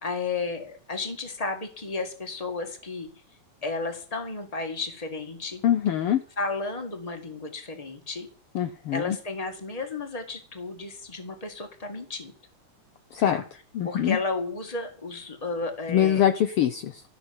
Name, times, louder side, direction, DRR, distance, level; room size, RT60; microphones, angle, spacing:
voice 1, 0.0-3.1 3.6-5.6 6.4-8.3 8.9-12.3 13.2-13.4 13.8-16.2, left 3 dB, 15° left, 6 dB, 1.6 m, -33 dB
voice 2, 5.6-6.2 8.5-9.2 13.1-13.4 13.7-14.2 15.9-17.0, left 10 dB, 75° left, 10 dB, 1.3 m, -23 dB
13.5 x 6.4 x 9.7 m, 0.42 s
omnidirectional pair, 3.4 m